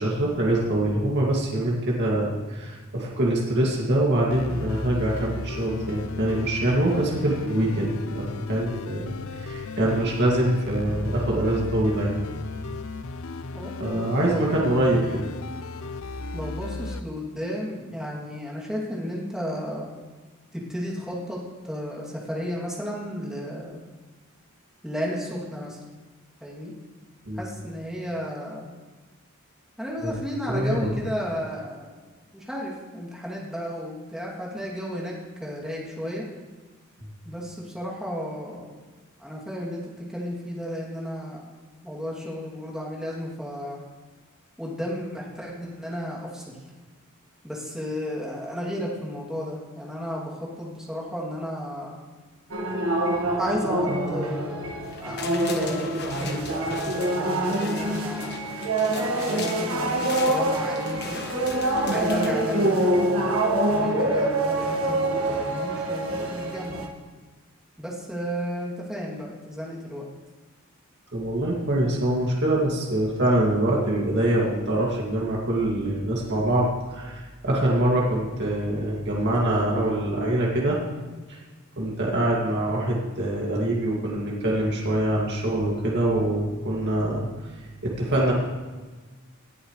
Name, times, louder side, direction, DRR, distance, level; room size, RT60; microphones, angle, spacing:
voice 1, 0.0-9.1 9.4-12.2 13.8-15.3 27.3-27.5 30.0-30.2 30.5-31.0 71.1-80.8 81.3-81.4 81.8-87.3 87.8-88.3, right 1 dB, 55° right, -4 dB, 2.3 m, -24 dB
sound 1, 4.3-17.0, left 3 dB, 75° left, 0.6 m, -35 dB
voice 2, 13.5-14.7 16.3-19.9 20.5-23.8 24.8-25.8 26.4-26.7 27.4-28.7 29.8-32.0 32.3-36.3 37.2-38.8 39.2-39.8 40.1-41.5 41.8-43.8 44.6-46.5 47.4-52.0 53.4-54.7 55.0-58.5 58.9-61.2 61.9-66.9 67.8-70.1, equal, 5° right, -5 dB, 2.7 m, -33 dB
sound 2, 52.5-66.9, right 1 dB, 80° right, 1.6 m, -25 dB
sound 3, 54.8-63.0 63.4-63.5, left 5 dB, 55° left, 1.2 m, -40 dB
19.0 x 11.0 x 3.3 m, 1.3 s
head